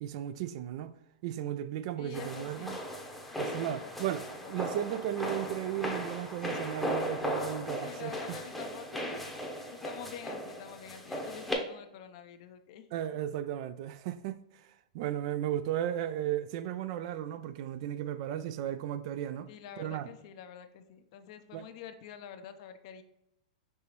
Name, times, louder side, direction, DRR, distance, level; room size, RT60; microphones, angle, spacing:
voice 1, 0.0-0.9 1.2-2.8 3.4-8.4 12.9-14.7 14.9-19.5 19.8-20.1 21.5-21.7, right 11 dB, 55° right, 0.3 m, -35 dB
voice 2, 2.0-2.8 3.6-4.8 7.8-12.9 19.5-23.0, left 9 dB, 55° left, 0.5 m, -47 dB
sound 1, 2.1-11.6, equal, ahead, 0.8 m, -37 dB
5.4 x 2.7 x 3.0 m
hypercardioid pair, 115°, 4 cm